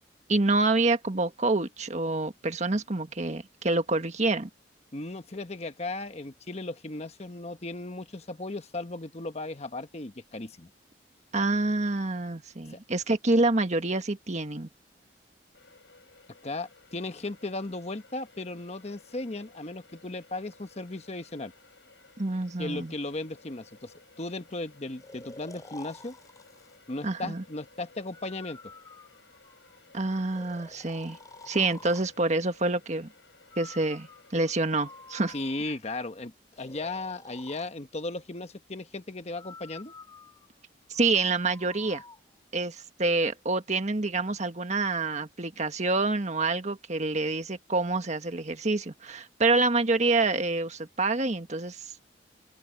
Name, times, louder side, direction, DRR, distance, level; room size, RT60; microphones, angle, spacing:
voice 1, 0.3-4.5 11.3-14.7 22.2-22.9 27.0-27.4 29.9-31.2 31.4-33.1 33.6-35.3 40.9-42.0 42.5-51.9, right 3 dB, 40° right, 1.6 m, -27 dB
voice 2, 4.9-10.7 12.7-12.8 16.4-21.5 22.6-26.1 26.9-28.6 35.3-36.3 36.6-39.9, left 2 dB, 35° left, 1.1 m, -36 dB
sound 1, 15.5-35.5, left 3 dB, 85° left, 6.2 m, -58 dB
Breathing, 25.0-26.8 28.1-29.8 30.3-32.1 33.5-35.8 36.5-37.7 39.3-42.2, left 3 dB, 20° left, 3.7 m, -50 dB
open air
head